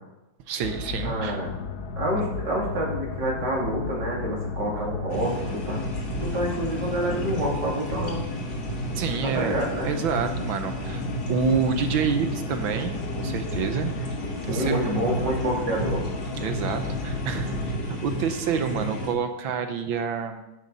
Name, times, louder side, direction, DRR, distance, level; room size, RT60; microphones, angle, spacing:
voice 1, 0.5-1.4 8.9-9.6 9.8-12.9 13.2-14.0 14.4-14.9 16.4-20.4, right 6 dB, 75° right, 8 dB, 1.6 m, -28 dB
sound 1, 0.6-17.8, left 5 dB, 60° left, 1.2 m, -35 dB
voice 2, 1.0-1.5 2.0-5.8 6.1-8.4 9.2-9.9 14.5-16.0, right 1 dB, 55° right, -3 dB, 3.4 m, -28 dB
sound 2, 5.1-19.1, equal, 35° left, 1.9 m, -32 dB
12.0 x 10.5 x 4.1 m, 0.97 s
omnidirectional pair, 2.2 m